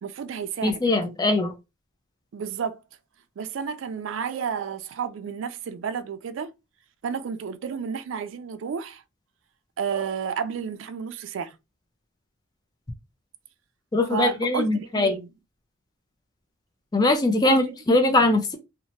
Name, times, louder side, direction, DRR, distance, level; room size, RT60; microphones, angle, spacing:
voice 1, 0.0-0.8 2.3-2.8 3.4-6.5 7.0-9.0 9.8-11.6 14.1-15.3 17.4-17.8, right 7 dB, 70° right, 0.3 m, -31 dB
voice 2, 0.6-1.5 13.9-15.2 16.9-18.6, left 2 dB, 20° left, 0.4 m, -21 dB
2.8 x 2.1 x 2.8 m
head